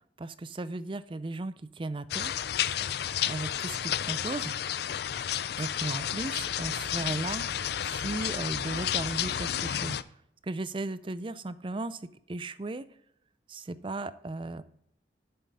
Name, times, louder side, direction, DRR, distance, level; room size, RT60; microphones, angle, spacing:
voice 1, 0.2-2.3 3.3-4.5 5.6-7.6 7.8-10.0 10.4-12.9 13.5-14.6, right 2 dB, 25° right, 15 dB, 0.4 m, -36 dB
sound 1, 2.1-10.0, left 10 dB, 55° left, 0.4 m, -31 dB
8.7 x 7.2 x 5.5 m, 0.74 s
head